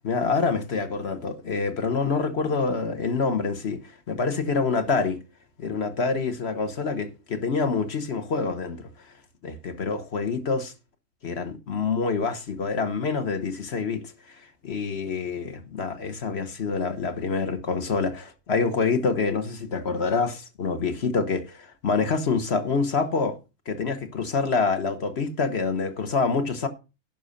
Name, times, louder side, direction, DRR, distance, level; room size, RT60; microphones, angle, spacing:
voice 1, 0.0-5.2 5.6-8.9 9.4-10.7 11.2-23.4 23.7-26.7, left 4 dB, 45° left, 1.3 m, -26 dB
11.0 x 5.5 x 6.5 m
omnidirectional pair, 1.6 m